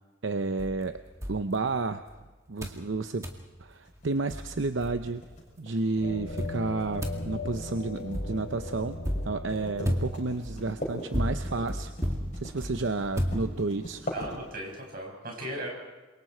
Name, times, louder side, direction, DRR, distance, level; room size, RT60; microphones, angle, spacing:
voice 1, 0.2-1.0 1.3-2.0 2.5-3.3 3.6-5.2 5.6-9.0 9.2-11.9 12.3-14.1, right 3 dB, 70° right, 9 dB, 0.7 m, -31 dB
sound 1, 0.6-2.2 2.6-2.9 3.2-3.5 4.0-4.1 4.3-5.4 6.4-14.0, equal, 15° right, 2.0 m, -34 dB
sound 2, 3.9-14.9, equal, 35° left, 6.4 m, -41 dB
sound 3, 6.0-10.7, left 2 dB, 65° left, 3.1 m, -39 dB
voice 2, 14.1-15.7, right 1 dB, 45° right, 0 dB, 6.3 m, -37 dB
28.0 x 23.5 x 4.5 m, 1.2 s
head